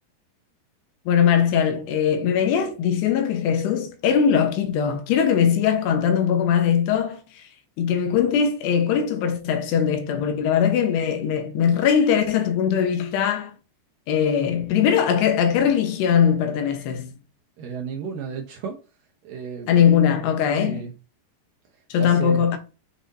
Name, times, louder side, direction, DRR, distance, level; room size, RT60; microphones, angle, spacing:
voice 1, 1.1-7.4 7.8-13.5 14.1-17.1 19.7-20.9 21.9-22.6, left 8 dB, 80° left, 3.2 m, -21 dB
voice 2, 17.6-18.8 19.2-19.7 20.5-20.9 22.0-22.5, right 6 dB, 70° right, 2.3 m, -33 dB
8.0 x 6.2 x 2.7 m
omnidirectional pair, 4.9 m